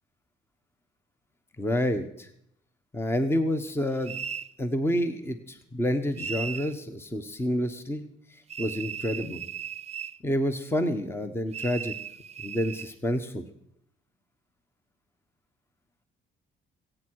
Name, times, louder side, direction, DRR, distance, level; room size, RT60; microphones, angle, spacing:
voice 1, 1.6-2.3 2.9-4.2 4.6-8.0 8.3-9.4 10.2-11.9 12.4-13.4, equal, 10° left, 9 dB, 1.1 m, -28 dB
sound 1, 4.0-4.5 6.2-6.7 8.5-10.2 11.5-12.9, right 7 dB, 35° right, 0.4 m, -37 dB
22.0 x 8.9 x 4.7 m, 0.71 s
cardioid pair, 90°, 20 cm